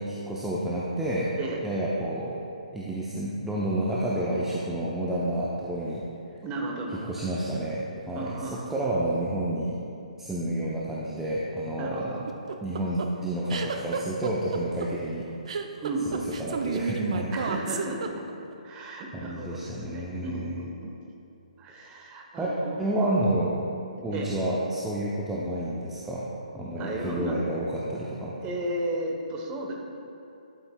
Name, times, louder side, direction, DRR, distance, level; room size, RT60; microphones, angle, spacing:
voice 1, 0.0-1.3 1.6-2.4 2.7-6.0 7.1-9.8 10.2-12.2 12.6-15.3 16.1-17.3 19.1-20.7 22.3-22.5 22.8-23.6 24.0-26.3 26.5-28.4, right 1 dB, 5° right, -7 dB, 0.6 m, -30 dB
voice 2, 6.4-7.3 8.1-8.7 11.8-12.2 15.8-16.2 17.3-18.3 18.6-20.9 21.6-22.8 24.1-24.3 26.8-27.4 28.4-29.7, right 2 dB, 20° right, 0 dB, 1.0 m, -34 dB
sound 1, 12.3-18.5, right 5 dB, 55° right, 0.5 m, -31 dB
11.5 x 6.9 x 2.3 m, 2.7 s
figure-of-eight pair, 135°, 4 cm